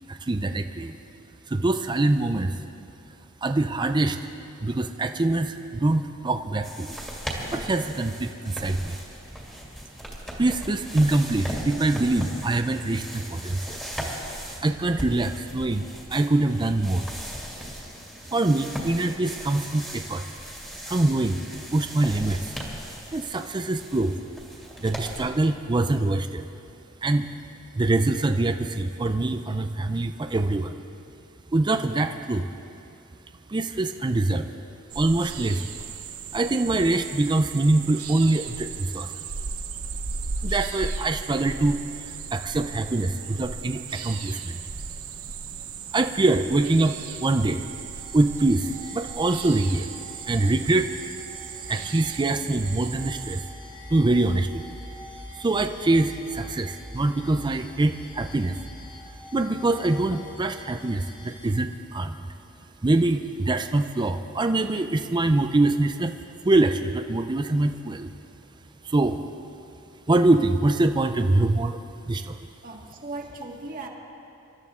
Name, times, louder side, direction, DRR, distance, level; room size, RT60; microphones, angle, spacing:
voice 1, 0.1-1.0 1.5-2.6 3.4-4.2 4.6-7.0 7.5-9.0 10.4-13.8 14.6-15.8 16.1-17.1 18.3-20.2 20.9-21.4 21.7-22.5 23.1-24.1 24.8-26.5 27.0-27.3 27.7-30.8 31.5-32.5 33.5-34.5 35.0-35.7 36.3-39.1 40.4-44.6 45.9-47.6 48.1-49.9 50.3-50.9 51.7-53.5 53.9-54.8 55.4-58.6 59.3-62.3 62.8-66.1 66.4-68.1 68.8-69.2 70.1-71.8 72.1-72.4, right 2 dB, 20° right, 7 dB, 0.5 m, -24 dB
sound 1, 6.6-25.3, equal, 5° left, 2.3 m, -38 dB
sound 2, 34.9-53.4, right 5 dB, 85° right, 0.9 m, -36 dB
sound 3, 47.8-61.5, left 1 dB, 40° left, 3.3 m, -44 dB
voice 2, 72.6-73.9, right 2 dB, 40° right, 0 dB, 1.8 m, -37 dB
27.0 x 13.0 x 3.7 m, 2.6 s
head